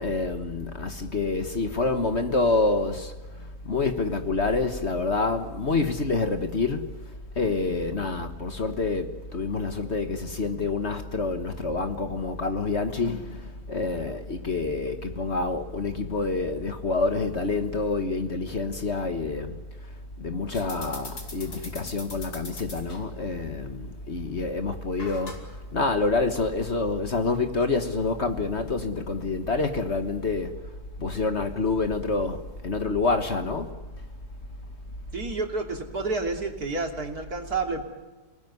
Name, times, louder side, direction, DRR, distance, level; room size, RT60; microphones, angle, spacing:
voice 1, 0.0-3.1 3.6-6.9 7.4-19.6 20.2-25.3 25.7-30.6 31.0-33.7, left 3 dB, 45° left, 1.6 m, -27 dB
sound 1, 20.5-30.5, left 2 dB, 70° left, 4.6 m, -46 dB
voice 2, 35.1-37.9, right 3 dB, 65° right, 3.5 m, -30 dB
29.0 x 20.0 x 9.5 m
omnidirectional pair, 1.8 m